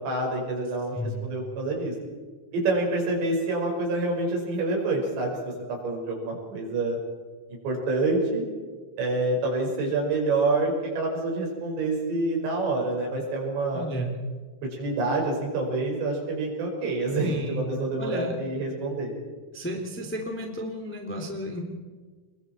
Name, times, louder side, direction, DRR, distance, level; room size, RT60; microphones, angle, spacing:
voice 1, 0.0-1.9 2.5-5.4 5.7-7.0 7.6-8.4 9.0-13.9 14.8-19.1, right 2 dB, 70° right, -1 dB, 7.7 m, -27 dB
voice 2, 0.9-1.3 13.7-14.2 17.2-17.7 18.0-18.3 19.5-21.6, right 1 dB, 5° left, 1 dB, 1.8 m, -33 dB
27.5 x 22.5 x 4.5 m, 1.4 s
omnidirectional pair, 5.3 m